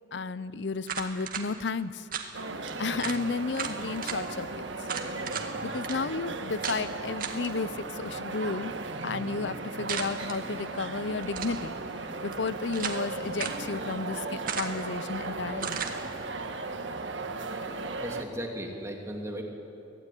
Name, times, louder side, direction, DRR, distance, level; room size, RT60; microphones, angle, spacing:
voice 1, 0.1-2.0 2.8-4.7 5.6-8.7 9.0-11.7 12.2-15.8, left 4 dB, 70° left, 16 dB, 0.7 m, -33 dB
sound 1, 0.8-1.4 2.1-2.3 2.7-2.8 3.0-3.2 3.5-4.2 4.9-5.5 5.8-6.0 6.6-6.8 7.2-7.5 9.9-10.4 11.2-11.6 12.3-13.0 13.4-13.6 14.5-14.9 15.6-16.0, right 7 dB, 50° right, 2.0 m, -35 dB
sound 2, 2.3-18.2, right 3 dB, 90° right, 1.6 m, -36 dB
voice 2, 17.7-19.4, equal, 15° right, 1 dB, 2.7 m, -37 dB
24.5 x 16.5 x 10.0 m, 2.8 s
head